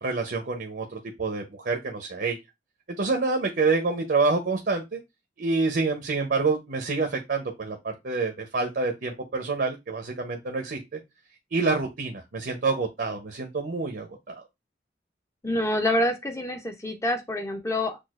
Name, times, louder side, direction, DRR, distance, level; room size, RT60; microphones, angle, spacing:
voice 1, 0.0-2.4 2.9-5.0 5.4-11.0 11.5-14.4, right 3 dB, 60° right, 0.7 m, -27 dB
voice 2, 15.4-18.0, left 1 dB, 15° left, 0.6 m, -27 dB
6.2 x 2.4 x 2.4 m
head